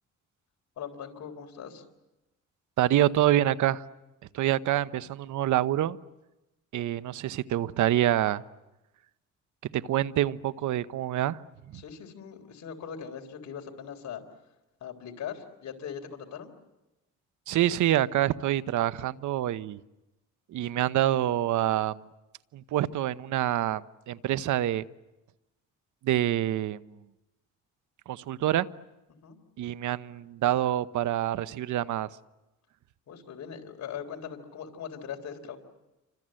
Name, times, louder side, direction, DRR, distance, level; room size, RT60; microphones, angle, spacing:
voice 1, 0.8-1.8 11.7-14.2 14.8-16.5 29.2-29.4 33.1-35.6, left 7 dB, 65° left, 4 dB, 3.7 m, -40 dB
voice 2, 2.8-3.8 4.3-6.0 6.7-8.4 9.7-11.4 11.7-11.8 17.5-19.8 20.5-22.0 22.5-23.8 24.1-24.8 26.0-26.8 28.1-28.7 29.6-32.1, right 12 dB, 75° right, 15 dB, 0.9 m, -26 dB
28.5 x 25.5 x 7.7 m, 1.0 s
cardioid pair, 90°, 30 cm